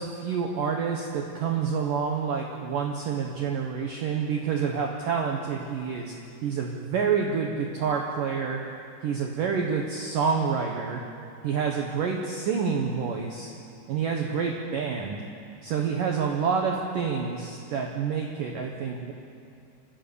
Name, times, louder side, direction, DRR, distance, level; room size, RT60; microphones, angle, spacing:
voice 1, 0.0-6.1 6.4-8.6 9.0-11.0 11.4-13.5 13.9-15.3 15.6-19.1, right 6 dB, 80° right, 1 dB, 1.9 m, -28 dB
30.0 x 14.5 x 7.1 m, 2.4 s
omnidirectional pair, 6.0 m